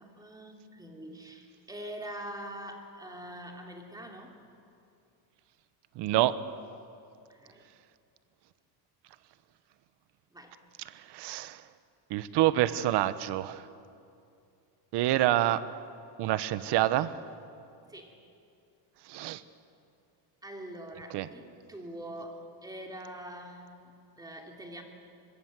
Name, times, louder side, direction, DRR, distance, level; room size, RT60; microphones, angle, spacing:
voice 1, 0.0-4.4 7.3-7.7 10.3-10.6 17.9-18.2 20.4-24.8, right 1 dB, 10° right, 2 dB, 2.9 m, -44 dB
voice 2, 6.0-6.3 10.9-11.6 12.1-13.6 14.9-15.6 16.2-17.1 19.1-19.4 21.1-21.3, right 14 dB, 60° right, 14 dB, 1.2 m, -27 dB
26.0 x 22.0 x 7.6 m, 2.6 s
cardioid pair, 145°, 46 cm